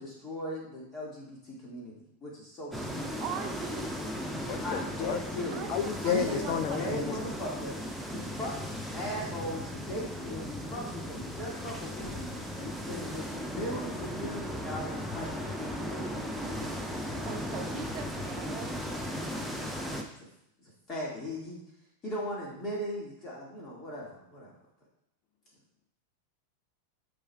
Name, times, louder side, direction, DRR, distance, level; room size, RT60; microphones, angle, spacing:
voice 1, 0.0-3.5 4.6-5.7 6.1-7.8 8.1-12.3 12.6-17.7 20.6-21.6 22.0-24.5, equal, 25° left, -4 dB, 2.0 m, -39 dB
sound 1, 2.7-20.0, equal, ahead, 0.7 m, -37 dB
voice 2, 3.2-3.9 5.5-6.5 6.9-7.2 17.3-19.1, right 8 dB, 40° right, 7 dB, 0.6 m, -41 dB
voice 3, 4.5-5.2 5.7-7.2, left 8 dB, 45° left, 8 dB, 0.5 m, -32 dB
9.6 x 4.7 x 2.3 m, 0.76 s
figure-of-eight pair, 90°, 0 cm